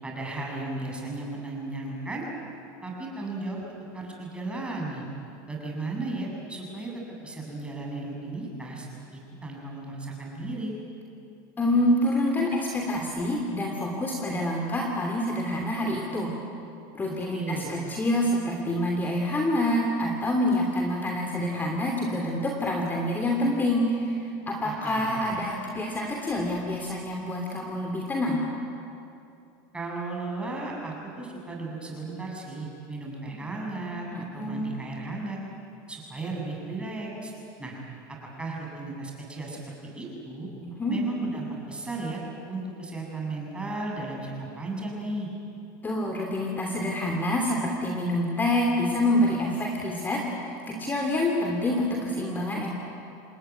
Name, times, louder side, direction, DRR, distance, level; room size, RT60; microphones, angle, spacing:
voice 1, 0.0-2.2 2.8-3.6 3.9-5.1 5.5-6.9 7.2-8.9 9.1-10.7 17.3-17.7 24.6-25.2 29.7-34.1 34.3-35.4 35.9-37.3 37.6-37.7 38.4-40.5 40.9-42.2 42.5-45.3, right 2 dB, 10° right, -2 dB, 7.3 m, -35 dB
voice 2, 11.6-16.3 16.9-24.2 24.5-28.4 33.3-33.4 34.1-34.7 40.6-41.0 45.8-52.7, left 1 dB, 20° left, 1 dB, 3.0 m, -27 dB
28.5 x 19.0 x 9.6 m, 2.7 s
supercardioid pair, 125°, 11 cm